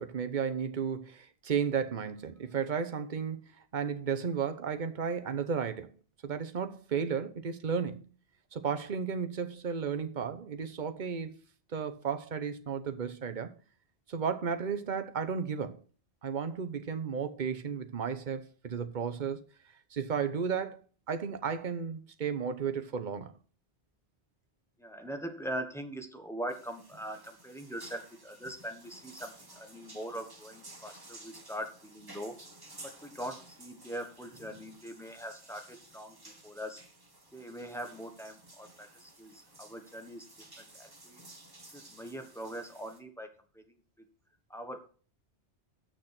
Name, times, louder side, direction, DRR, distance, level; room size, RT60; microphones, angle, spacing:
voice 1, 0.0-5.9 6.2-8.0 8.5-11.3 11.7-13.5 14.1-15.8 16.2-19.4 19.9-20.8 21.1-23.3, right 6 dB, 45° right, 1.0 m, -33 dB
voice 2, 24.8-32.4 32.8-36.2 36.4-36.8 37.3-40.2 40.6-41.2 41.7-43.3 43.5-43.7 44.5-44.8, right 1 dB, ahead, 1.2 m, -42 dB
sound 1, 26.5-43.0, right 2 dB, 20° right, 1.5 m, -54 dB
8.0 x 6.6 x 5.9 m
omnidirectional pair, 1.2 m